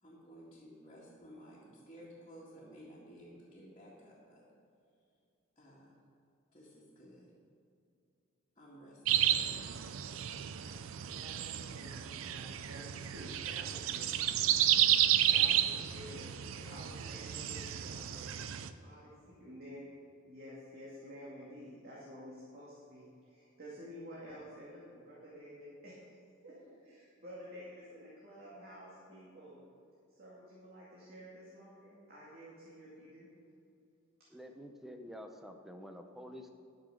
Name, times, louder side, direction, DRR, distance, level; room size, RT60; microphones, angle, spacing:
voice 1, 0.0-4.4 5.6-6.0 6.5-7.3 8.6-9.8, equal, 25° left, -8 dB, 2.0 m, -55 dB
sound 1, 9.1-18.7, right 11 dB, 80° right, 0.5 m, -32 dB
voice 2, 11.2-14.3 15.2-19.9 20.3-26.2 26.4-29.6 30.1-33.3, equal, 50° right, -7 dB, 2.2 m, -51 dB
voice 3, 34.3-36.5, equal, ahead, 5 dB, 0.7 m, -48 dB
12.0 x 6.1 x 6.5 m, 2.5 s
head